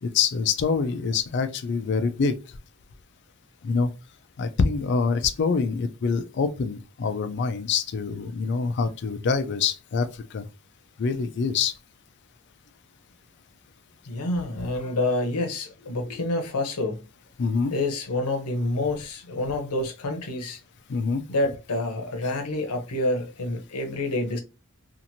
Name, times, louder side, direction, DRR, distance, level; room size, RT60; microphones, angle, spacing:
voice 1, 0.0-2.4 3.6-3.9 4.4-10.5 11.0-11.7 17.4-17.7 20.9-21.2, left 5 dB, 50° left, 0.4 m, -25 dB
voice 2, 14.1-17.0 17.7-20.6 21.3-24.4, left 2 dB, 90° left, 0.7 m, -28 dB
2.9 x 2.5 x 2.6 m
head